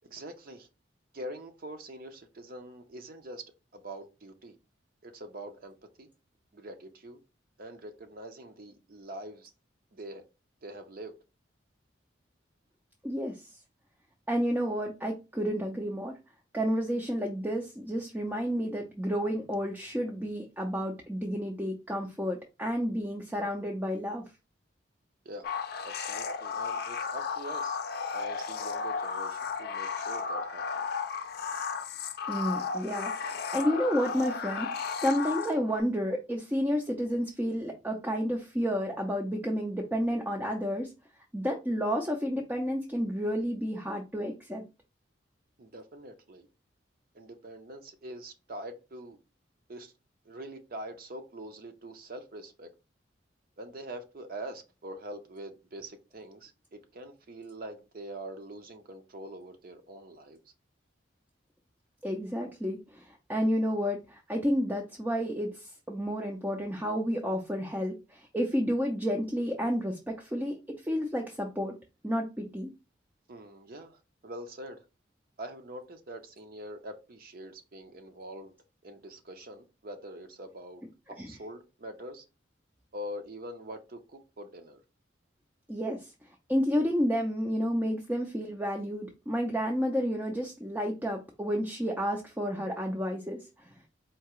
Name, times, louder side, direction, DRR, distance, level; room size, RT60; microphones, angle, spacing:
voice 1, 0.0-0.7 1.1-3.4 3.7-4.6 5.0-6.1 6.5-7.2 7.6-9.5 9.9-10.2 10.6-11.1 25.2-25.6 25.8-27.8 28.1-30.9 45.6-46.5 47.1-49.2 49.7-49.9 50.2-52.7 53.6-60.4 73.3-74.8 75.4-78.5 78.8-80.8 81.1-82.2 82.9-84.8, right 1 dB, 50° right, 0.6 m, -44 dB
voice 2, 13.0-13.6 14.3-16.1 16.5-24.2 32.3-40.9 41.3-44.6 62.0-70.6 70.8-71.7 72.0-72.7 81.2-81.3 85.7-86.1 86.5-93.7, equal, 10° right, 0.5 m, -31 dB
sound 1, 25.4-35.8, left 5 dB, 55° left, 0.5 m, -34 dB
4.6 x 2.8 x 3.0 m
head